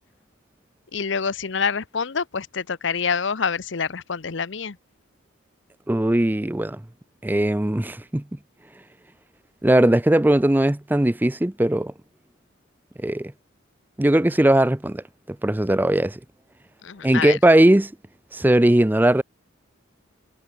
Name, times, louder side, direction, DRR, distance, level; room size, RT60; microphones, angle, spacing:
voice 1, 0.9-4.8 16.8-17.4, left 6 dB, 65° left, 0.8 m, -26 dB
voice 2, 5.9-6.8 7.2-8.2 9.6-11.9 13.0-13.3 14.0-16.2 17.0-17.9 18.3-19.2, right 1 dB, 10° right, 0.5 m, -19 dB
head